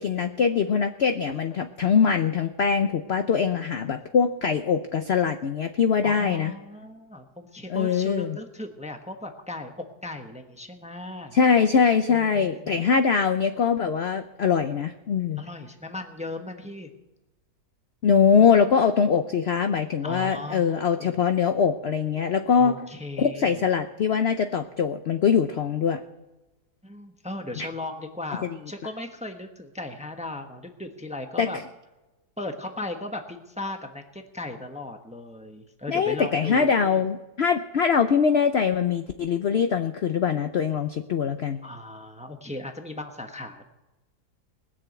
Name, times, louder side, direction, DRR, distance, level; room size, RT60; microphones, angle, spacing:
voice 1, 0.0-6.5 7.7-8.4 11.3-15.4 18.0-22.8 23.2-26.0 27.6-27.7 31.4-31.6 35.9-41.6, left 6 dB, 60° left, 8 dB, 0.7 m, -22 dB
voice 2, 6.0-11.4 12.1-12.8 15.4-16.9 20.0-21.2 22.6-23.6 26.8-31.6 32.4-37.1 41.6-43.6, left 2 dB, 5° right, 5 dB, 0.8 m, -37 dB
20.0 x 6.9 x 8.0 m, 1.1 s
omnidirectional pair, 1.7 m